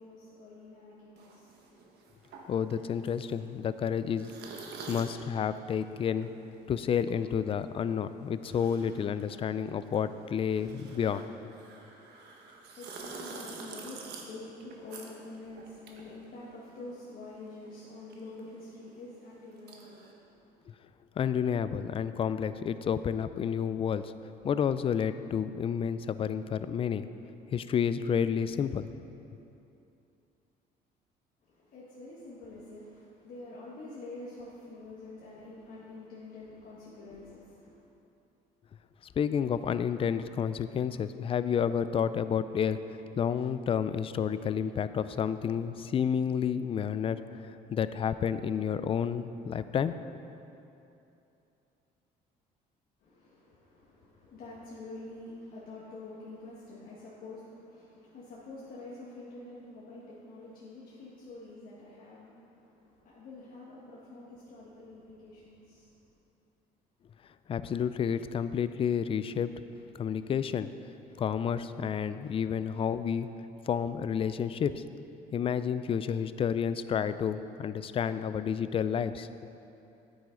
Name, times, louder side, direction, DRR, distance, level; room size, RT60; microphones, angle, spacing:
voice 1, 0.0-1.9 12.5-20.7 31.4-37.8 53.0-66.0, left 2 dB, 60° left, -7 dB, 1.4 m, -47 dB
sound 1, 1.2-17.0 17.2-20.1, right 4 dB, 75° right, 1.2 m, -48 dB
voice 2, 2.5-4.3 4.6-6.3 6.7-11.3 21.2-24.1 24.4-27.1 27.5-28.9 39.2-50.0 67.5-69.5 70.0-70.7 71.2-73.3 73.7-74.8 75.3-79.3, left 7 dB, 35° left, 13 dB, 0.3 m, -30 dB
9.1 x 9.1 x 3.8 m, 2.8 s
cardioid pair, 110°, 17 cm